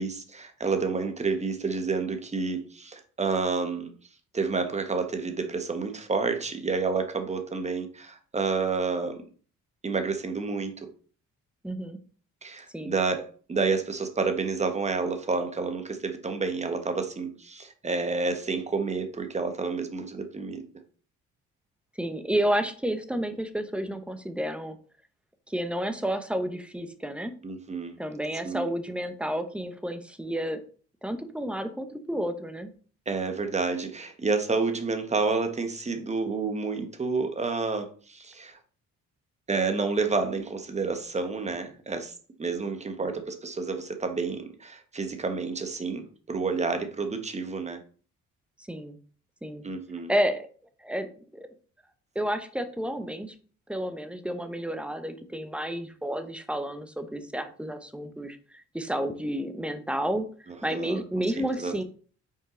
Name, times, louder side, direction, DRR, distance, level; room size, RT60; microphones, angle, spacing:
voice 1, 0.0-3.9 4.3-9.2 9.8-10.7 12.4-13.2 13.5-20.6 27.4-27.9 28.4-28.6 33.1-38.5 39.5-42.1 42.4-47.8 49.6-50.1 60.7-61.0 61.6-61.8, right 4 dB, 20° right, 7 dB, 1.1 m, -29 dB
voice 2, 11.6-12.0 12.7-12.9 22.0-24.8 25.5-27.3 28.0-30.6 31.0-32.7 43.0-43.2 48.7-49.0 49.4-49.6 50.1-50.5 50.8-51.1 51.3-51.5 52.1-53.3 53.7-60.2 60.6-61.8, equal, 5° right, 8 dB, 0.8 m, -31 dB
5.6 x 4.5 x 3.7 m, 0.42 s
cardioid pair, 90°, 30 cm